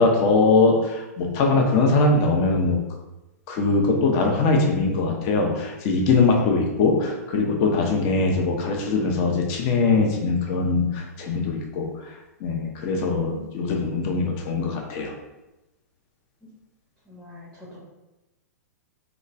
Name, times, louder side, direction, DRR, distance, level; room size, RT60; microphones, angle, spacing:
voice 1, 0.0-2.8 3.5-11.9 12.4-15.1, left 3 dB, 35° left, 1 dB, 0.5 m, -21 dB
voice 2, 12.8-13.5 16.4-16.5 17.1-17.8, right 1 dB, 5° right, -6 dB, 0.6 m, -43 dB
2.9 x 2.2 x 2.5 m, 1.0 s
figure-of-eight pair, 105°, 9 cm